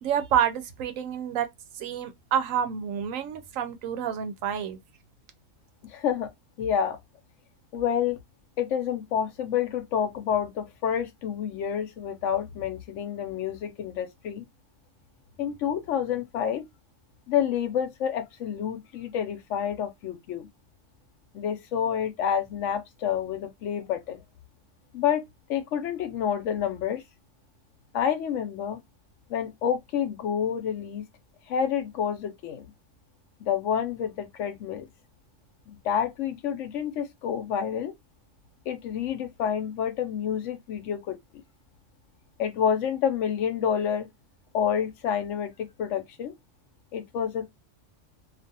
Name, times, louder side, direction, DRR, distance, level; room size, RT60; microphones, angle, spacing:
voice 1, 0.0-1.5 1.7-4.8, right 9 dB, 85° right, 1.0 m, -28 dB
voice 2, 5.8-6.3 6.6-7.0 7.7-8.2 8.6-14.5 15.4-16.6 17.3-20.5 21.3-24.2 24.9-25.2 25.5-27.0 27.9-28.8 29.3-31.0 31.5-32.7 33.4-34.9 35.7-37.9 38.7-41.4 42.4-44.1 44.5-46.3 46.9-47.5, left 8 dB, 75° left, 0.9 m, -28 dB
2.5 x 2.4 x 2.6 m
omnidirectional pair, 1.3 m